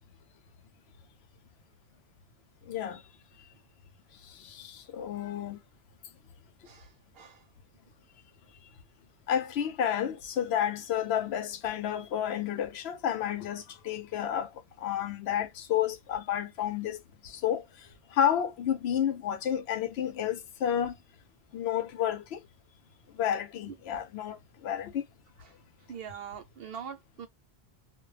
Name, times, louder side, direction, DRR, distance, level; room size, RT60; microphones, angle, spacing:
voice 1, 2.7-3.0 4.4-5.6 9.3-14.5 14.8-17.6 18.1-20.9 21.5-22.4 23.2-25.1, left 9 dB, 85° left, 0.8 m, -31 dB
voice 2, 6.6-7.4 23.7-23.8 25.4-25.6 25.9-27.3, right 7 dB, 70° right, 0.9 m, -43 dB
2.2 x 2.1 x 3.2 m
omnidirectional pair, 1.0 m